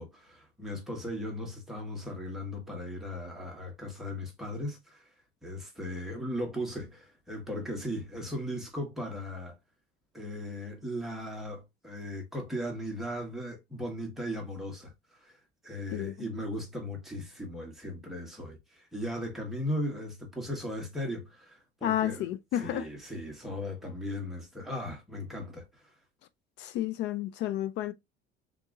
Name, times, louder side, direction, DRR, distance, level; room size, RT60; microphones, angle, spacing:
voice 1, 0.0-5.0 5.4-9.6 10.1-14.9 15.2-15.3 15.6-25.7, equal, ahead, 1.2 m, -37 dB
voice 2, 15.9-16.3 21.8-22.8 26.6-27.9, left 12 dB, 60° left, 0.4 m, -31 dB
3.6 x 2.8 x 3.6 m
cardioid pair, 155°, 20 cm